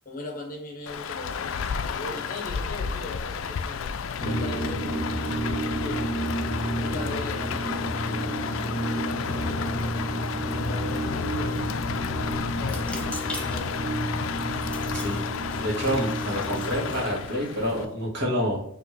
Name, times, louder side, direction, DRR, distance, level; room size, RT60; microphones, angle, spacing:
voice 1, 0.0-1.5 1.9-3.9 4.2-6.1 6.8-10.0 10.5-11.7 12.6-13.7, left 2 dB, 45° left, 1 dB, 1.0 m, -39 dB
Rain, 0.9-17.9, left 6 dB, 70° left, 0.3 m, -32 dB
sound 1, 4.2-17.0, right 1 dB, 15° right, 1.3 m, -31 dB
sound 2, 12.7-17.9, left 2 dB, 5° left, 0.6 m, -42 dB
voice 2, 15.6-18.6, equal, 55° right, -4 dB, 1.5 m, -28 dB
4.8 x 2.9 x 2.8 m, 0.69 s
head